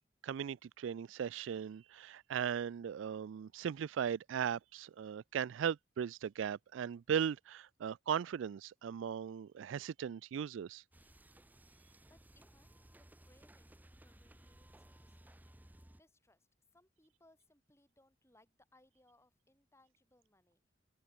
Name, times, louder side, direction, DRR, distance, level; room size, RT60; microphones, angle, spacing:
voice 1, 0.2-10.8, right 8 dB, 80° right, 0.3 m, -38 dB
sound 1, 10.9-16.0, right 1 dB, 10° right, 0.8 m, -60 dB
voice 2, 11.6-15.4 15.7-20.7, left 1 dB, 15° left, 6.0 m, -70 dB
open air
head